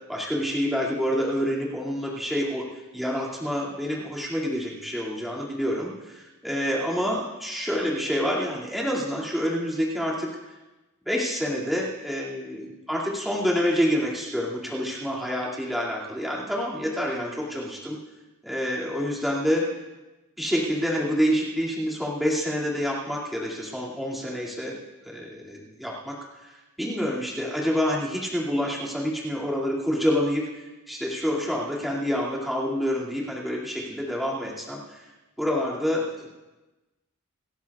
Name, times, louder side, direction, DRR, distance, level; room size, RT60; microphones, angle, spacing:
voice 1, 0.1-10.3 11.1-18.0 18.4-19.7 20.4-24.8 25.0-35.1 35.4-36.3, equal, ahead, -6 dB, 2.3 m, -27 dB
27.0 x 14.0 x 2.4 m, 1.1 s
head